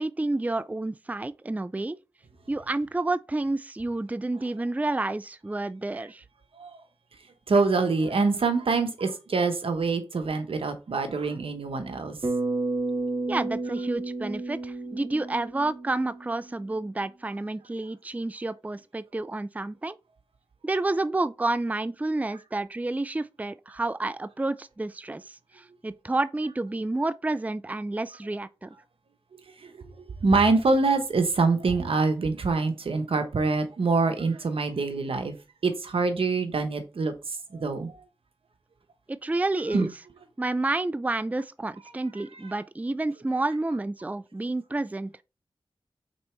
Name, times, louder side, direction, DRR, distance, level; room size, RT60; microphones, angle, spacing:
voice 1, 0.0-2.0 2.5-6.2 13.3-20.0 20.6-28.7 39.1-39.9 40.4-45.2, right 2 dB, 15° right, 0.4 m, -30 dB
voice 2, 7.5-12.2 29.6-29.7 30.0-35.3 35.6-37.1 37.5-38.0 39.7-39.9, right 3 dB, 85° right, 1.0 m, -25 dB
Bass guitar, 12.2-16.6, right 2 dB, 45° right, 1.6 m, -31 dB
5.4 x 3.9 x 4.4 m
cardioid pair, 45°, 9 cm